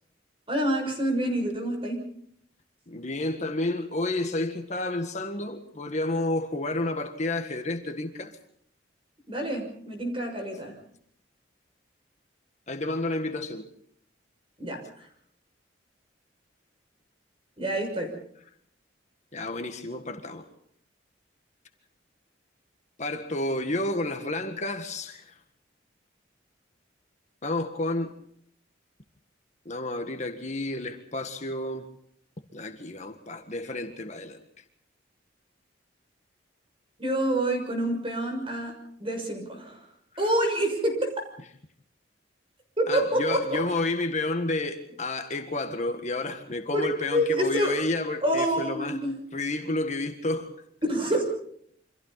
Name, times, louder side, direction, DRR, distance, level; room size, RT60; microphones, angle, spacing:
voice 1, 0.5-2.0 9.3-10.8 14.6-14.8 17.6-18.2 37.0-38.7 39.0-39.8 40.2-41.2 42.8-43.6 46.7-47.8 48.2-49.2 50.9-51.2, right 1 dB, 30° right, 6.4 m, -27 dB
voice 2, 2.9-8.4 12.7-13.7 19.3-20.5 23.0-25.3 27.4-28.2 29.7-31.8 32.5-34.4 42.9-49.0 49.3-50.5, left 2 dB, 40° left, 1.7 m, -30 dB
28.5 x 26.0 x 4.2 m
head